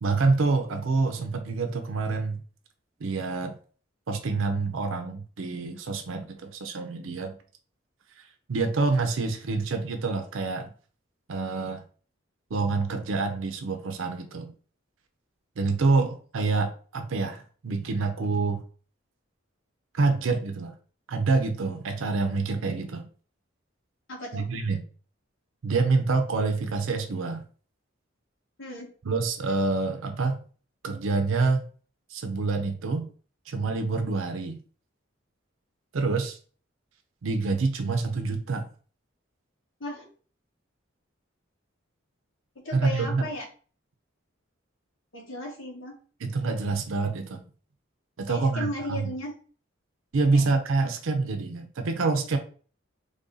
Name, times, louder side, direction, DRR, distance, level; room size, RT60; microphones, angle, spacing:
voice 1, 0.0-2.4 3.0-3.6 4.1-7.3 8.5-10.7 11.3-11.8 12.5-14.5 15.6-18.6 19.9-20.7 21.1-23.0 24.3-24.8 25.6-27.4 29.0-30.4 30.8-31.6 32.1-33.1 33.5-34.6 35.9-36.4 37.2-38.6 42.7-43.3 46.2-47.4 48.2-49.1 50.1-52.4, right 3 dB, 80° right, 6 dB, 0.5 m, -27 dB
voice 2, 24.1-24.5 28.6-28.9 39.8-40.1 42.5-43.5 45.1-46.0 48.3-49.3 50.3-50.5, left 1 dB, 75° left, -1 dB, 1.2 m, -36 dB
3.3 x 2.6 x 3.8 m, 0.40 s
head